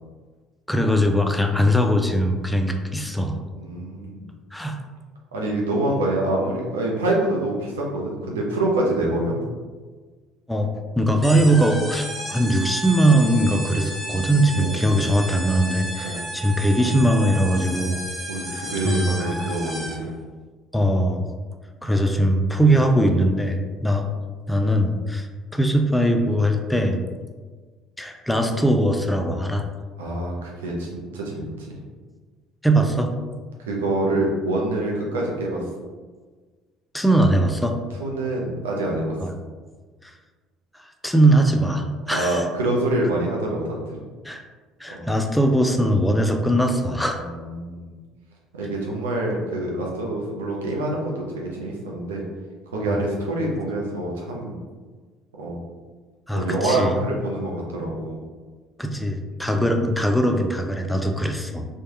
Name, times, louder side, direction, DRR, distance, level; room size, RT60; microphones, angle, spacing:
voice 1, 0.7-3.4 4.5-4.8 10.5-10.7 11.0-18.0 18.8-19.5 20.7-21.2 21.8-24.1 24.5-25.3 25.5-27.0 28.0-29.6 32.6-33.1 36.9-37.8 39.2-39.3 40.0-40.1 40.8-42.5 44.2-44.4 44.8-47.2 52.9-53.0 56.3-56.9 58.8-61.7, right 1 dB, 5° left, 4 dB, 0.3 m, -21 dB
voice 2, 3.6-4.3 5.3-9.3 14.6-14.8 16.0-16.2 18.3-20.1 30.0-31.8 33.6-35.6 38.0-39.1 42.1-44.0 44.9-45.1 47.1-47.9 48.5-52.2 52.7-54.6 55.4-55.6 56.3-58.2, right 1 dB, 75° right, -2 dB, 0.5 m, -26 dB
sound 1, 11.2-20.1, right 1 dB, 15° right, 0.8 m, -33 dB
3.1 x 2.1 x 2.9 m, 1.4 s
figure-of-eight pair, 55°, 0 cm